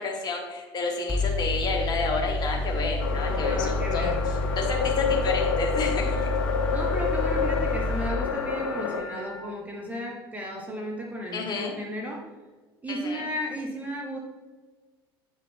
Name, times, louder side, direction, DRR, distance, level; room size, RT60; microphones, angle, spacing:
voice 1, 0.0-4.1 4.6-6.3 11.3-11.7 12.9-13.3, left 3 dB, 35° left, 1 dB, 1.6 m, -30 dB
Mechanical fan, 1.1-8.1, left 1 dB, 5° left, 0.8 m, -29 dB
sound 1, 3.0-9.0, left 6 dB, 60° left, 0.6 m, -29 dB
voice 2, 3.1-4.2 6.7-12.2 12.8-14.2, equal, 10° right, -2 dB, 1.1 m, -34 dB
sound 2, 3.8-9.5, left 3 dB, 75° right, 0.9 m, -39 dB
8.1 x 5.0 x 3.5 m, 1.3 s
figure-of-eight pair, 70°, 12 cm